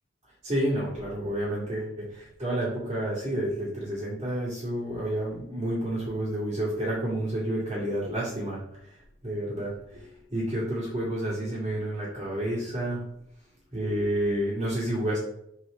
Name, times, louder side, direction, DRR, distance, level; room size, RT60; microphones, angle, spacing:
voice 1, 0.4-8.6 9.2-13.0 13.7-15.2, right 1 dB, 30° right, -8 dB, 2.2 m, -30 dB
6.3 x 4.8 x 3.8 m, 0.75 s
head